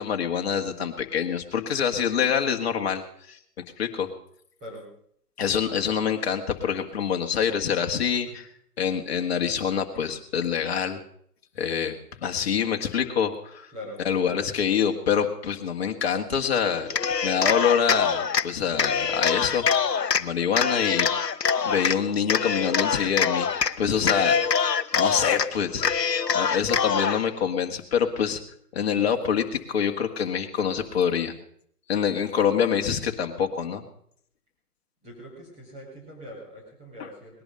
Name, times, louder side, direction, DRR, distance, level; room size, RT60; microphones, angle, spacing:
voice 1, 0.0-3.4 3.8-4.1 5.4-8.5 8.8-11.0 11.6-13.7 14.1-16.9 17.2-19.6 20.2-21.1 21.6-23.5 23.8-26.1 26.3-28.4 28.7-31.3 31.9-33.8 37.0-37.1, left 7 dB, 40° left, 4 dB, 1.9 m, -26 dB
Cheering, 16.8-18.5 18.8-20.2 20.5-22.0 22.3-23.7 24.0-25.5 25.8-27.2, left 6 dB, 90° left, 0.9 m, -24 dB
voice 2, 35.0-37.4, equal, 15° right, -4 dB, 4.8 m, -42 dB
19.5 x 11.0 x 5.5 m, 0.65 s
figure-of-eight pair, 145°, 48 cm